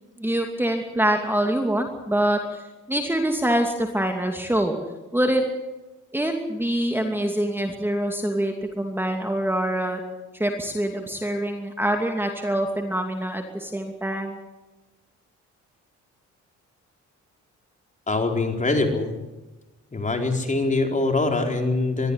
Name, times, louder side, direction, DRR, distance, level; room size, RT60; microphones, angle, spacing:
voice 1, 0.2-2.6 2.9-4.8 5.1-5.4 6.1-10.0 10.3-14.4, right 1 dB, 5° right, 3 dB, 2.7 m, -25 dB
voice 2, 18.1-19.1 19.9-22.1, left 2 dB, 25° left, 3 dB, 4.3 m, -23 dB
22.5 x 13.5 x 9.8 m, 1.1 s
cardioid pair, 90°, 30 cm